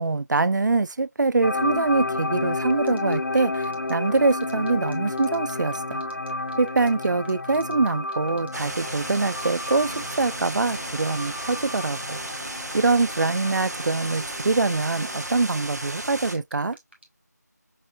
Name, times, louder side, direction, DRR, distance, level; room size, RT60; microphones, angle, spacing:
voice 1, 0.0-6.0 6.6-12.2 12.7-16.8, right 3 dB, 85° right, 0.4 m, -24 dB
sound 1, 1.4-15.4, left 2 dB, 90° left, 0.5 m, -32 dB
sound 2, 2.9-17.0, right 1 dB, 40° right, 0.8 m, -49 dB
sound 3, 8.5-16.3, right 1 dB, 65° right, 0.9 m, -34 dB
5.5 x 2.1 x 2.4 m
figure-of-eight pair, 180°, 10 cm